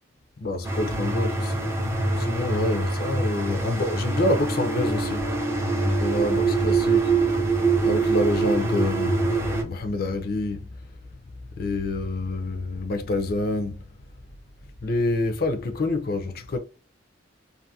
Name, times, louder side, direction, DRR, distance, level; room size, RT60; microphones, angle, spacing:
voice 1, 0.4-1.7 2.2-5.3 5.8-7.1 7.8-10.7 11.6-13.8 14.8-16.6, left 2 dB, 55° left, 0.5 m, -27 dB
sound 1, 0.6-9.6, right 3 dB, 15° right, 0.5 m, -24 dB
2.6 x 2.5 x 2.6 m
head